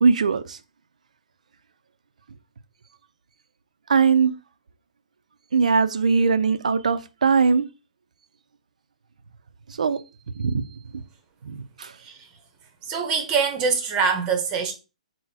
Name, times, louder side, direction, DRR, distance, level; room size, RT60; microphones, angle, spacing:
voice 1, 0.0-0.6 3.9-4.3 5.5-7.7 9.8-10.0 10.4-10.6 10.9-11.0 11.4-11.9, right 5 dB, 75° right, 0.5 m, -20 dB
voice 2, 12.0-12.3 12.8-14.7, right 5 dB, 25° right, 0.9 m, -24 dB
3.9 x 2.1 x 4.1 m
hypercardioid pair, 140°, 4 cm